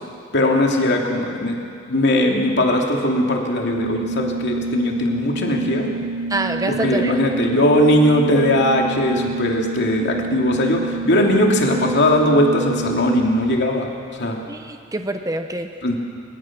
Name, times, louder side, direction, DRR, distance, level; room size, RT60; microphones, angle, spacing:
voice 1, 0.3-1.6 1.9-5.9 6.7-13.9 14.2-14.4 15.8-16.0, left 1 dB, 55° left, 0 dB, 2.8 m, -19 dB
Organ, 3.5-13.8, right 3 dB, 45° right, 4.5 m, -28 dB
voice 2, 6.3-7.1 14.5-15.7, right 2 dB, 15° right, 6 dB, 0.9 m, -25 dB
29.5 x 16.5 x 6.1 m, 2.3 s
head